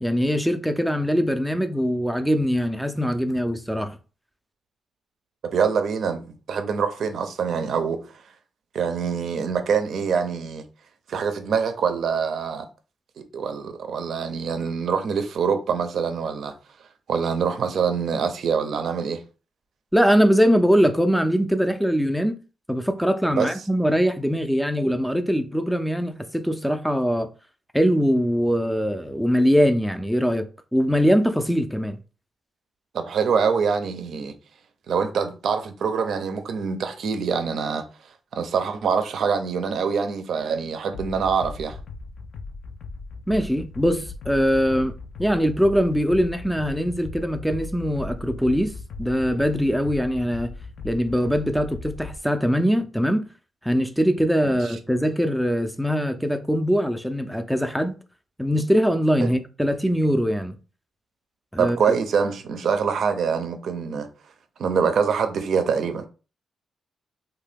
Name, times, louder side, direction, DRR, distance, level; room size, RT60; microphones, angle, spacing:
voice 1, 0.0-4.0 19.9-22.4 22.7-27.3 27.7-32.0 43.3-44.9 45.2-50.5 50.8-53.3 53.6-58.0 58.4-60.6 61.5-61.8, equal, ahead, 0.4 m, -22 dB
voice 2, 5.4-8.0 8.7-10.6 11.1-12.7 13.2-16.5 17.1-19.2 23.3-23.5 32.9-34.3 34.9-37.8 38.3-41.8 54.4-54.5 59.2-59.3 61.6-64.1 64.6-66.1, right 6 dB, 70° right, 0.5 m, -25 dB
sound 1, 40.9-52.2, left 3 dB, 65° left, 0.3 m, -38 dB
2.7 x 2.2 x 3.4 m
cardioid pair, 80°, 0 cm